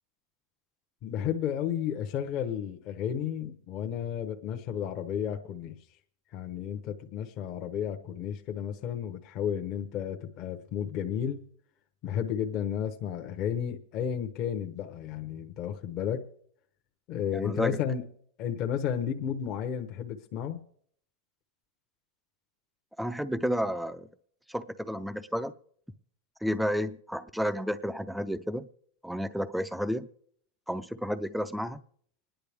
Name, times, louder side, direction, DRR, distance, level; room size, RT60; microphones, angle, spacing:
voice 1, 1.0-5.8 6.3-11.5 12.0-16.2 17.1-18.0 18.4-20.6, left 9 dB, 40° left, 4 dB, 0.9 m, -32 dB
voice 2, 17.3-17.8 23.0-24.1 24.5-25.5 26.4-28.7 29.0-30.1 30.7-31.8, equal, ahead, 13 dB, 0.5 m, -31 dB
25.5 x 10.0 x 3.5 m, 0.64 s
supercardioid pair, 155°, 0 cm